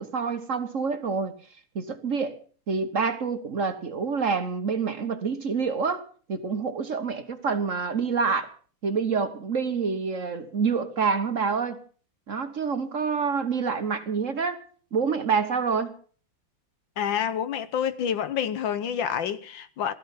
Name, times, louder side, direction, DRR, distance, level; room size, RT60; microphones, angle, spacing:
voice 1, 0.0-1.3 1.7-2.4 2.7-6.0 6.3-8.5 8.8-11.8 12.3-14.6 14.9-15.9, right 5 dB, 45° right, 1.4 m, -27 dB
voice 2, 17.0-19.9, left 8 dB, 75° left, 1.7 m, -28 dB
17.0 x 14.0 x 5.7 m
omnidirectional pair, 2.1 m